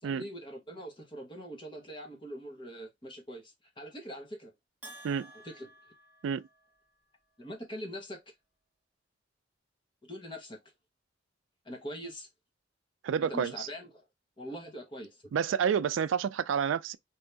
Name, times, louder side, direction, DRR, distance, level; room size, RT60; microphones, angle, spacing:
voice 1, 0.0-4.5 5.3-5.7 7.4-8.2 10.1-10.6 11.6-12.3 13.2-14.1 14.4-15.2, equal, 25° left, 1.0 m, -43 dB
Bell, 4.8-7.0, right 1 dB, 10° right, 1.0 m, -52 dB
voice 2, 13.0-13.7 15.3-17.0, right 7 dB, 85° right, 0.3 m, -29 dB
2.9 x 2.6 x 3.3 m
head